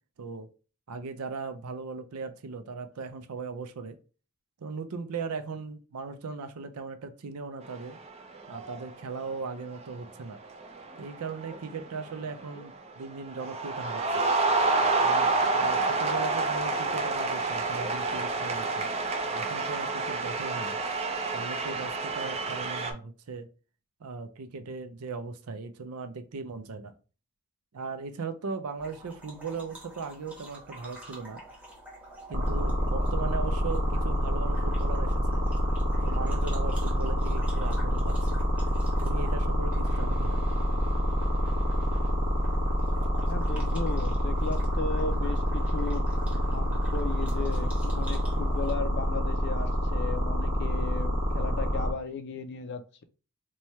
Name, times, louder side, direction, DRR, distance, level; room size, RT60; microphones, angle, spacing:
voice 1, 0.9-4.0 4.6-8.0 8.5-10.4 11.0-14.2 15.0-18.9 19.3-20.8 21.3-23.5 24.0-26.9 27.7-31.4 32.3-35.5 36.0-38.3 39.0-40.4, right 4 dB, 80° right, 0.5 m, -38 dB
sound 1, 7.6-8.1 8.4-8.9 9.8-10.0 10.4-12.7 13.0-22.9, right 3 dB, 30° right, 0.5 m, -28 dB
sound 2, 28.8-48.7, right 1 dB, 5° right, 1.0 m, -49 dB
sound 3, 32.3-51.9, equal, 50° right, 1.1 m, -26 dB
voice 2, 43.2-53.0, left 4 dB, 50° left, 0.5 m, -36 dB
3.1 x 2.2 x 4.1 m
head